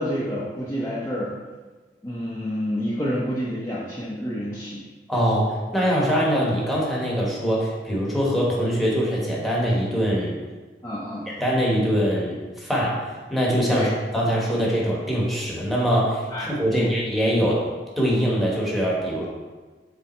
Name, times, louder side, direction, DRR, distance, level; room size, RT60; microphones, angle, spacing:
voice 1, 0.0-1.3 2.0-4.8 10.8-11.3 13.7-13.9 16.3-16.9, equal, 15° left, -8 dB, 0.8 m, -28 dB
voice 2, 5.1-10.4 11.4-13.0 13.3-13.9 14.1-17.6 18.0-19.3, equal, ahead, -5 dB, 1.3 m, -23 dB
7.2 x 3.5 x 4.4 m, 1.3 s
head